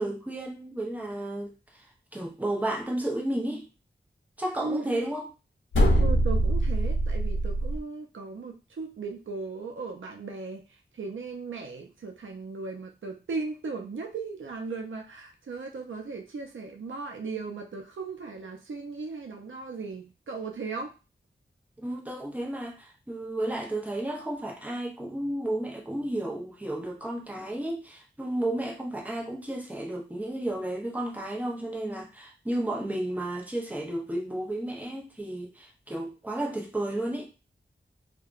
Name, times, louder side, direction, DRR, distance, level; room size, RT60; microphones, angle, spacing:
voice 1, 0.0-1.9 2.1-3.7 4.4-5.3 21.8-37.3, right 1 dB, 10° right, 0.6 m, -32 dB
voice 2, 4.6-5.0 6.0-10.6 11.0-20.9, right 4 dB, 85° right, 0.5 m, -37 dB
sound 1, 5.7-7.8, right 1 dB, 85° left, 0.6 m, -23 dB
2.7 x 2.2 x 2.4 m
wide cardioid pair, 65°, 20 cm